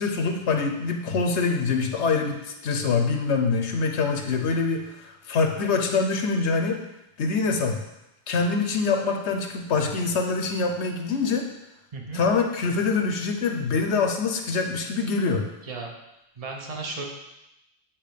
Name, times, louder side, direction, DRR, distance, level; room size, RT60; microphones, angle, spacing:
voice 1, 0.0-6.8 7.2-7.8 8.3-11.5 12.1-15.4, left 4 dB, 85° left, 3 dB, 1.1 m, -25 dB
voice 2, 11.9-12.2 15.6-15.9 16.4-17.0, right 3 dB, 35° right, 0 dB, 1.0 m, -34 dB
8.5 x 3.0 x 5.0 m, 0.89 s
omnidirectional pair, 1.1 m